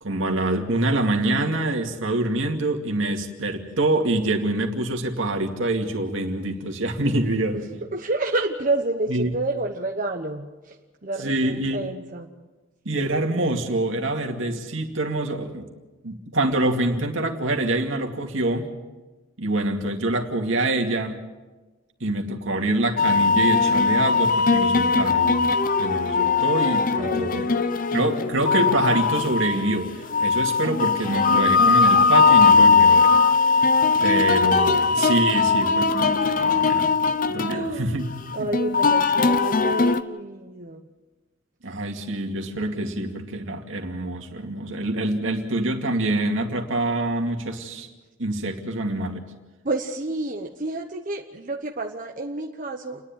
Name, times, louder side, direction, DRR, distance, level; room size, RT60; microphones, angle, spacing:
voice 1, 0.0-7.6 9.1-9.3 11.2-11.9 12.8-15.7 16.0-18.7 19.4-21.1 22.0-25.5 25.8-27.5 27.9-33.1 34.0-37.0 37.3-38.3 41.6-47.9 48.2-49.2, right 2 dB, 75° right, 3 dB, 2.4 m, -25 dB
voice 2, 7.9-10.8 11.0-12.3 26.1-26.3 26.9-27.8 37.5-38.0 38.3-40.8 49.6-53.0, right 2 dB, 40° right, 2 dB, 1.1 m, -29 dB
sound 1, 23.0-40.0, left 4 dB, 45° left, 0.8 m, -20 dB
29.5 x 11.0 x 8.9 m, 1.2 s
head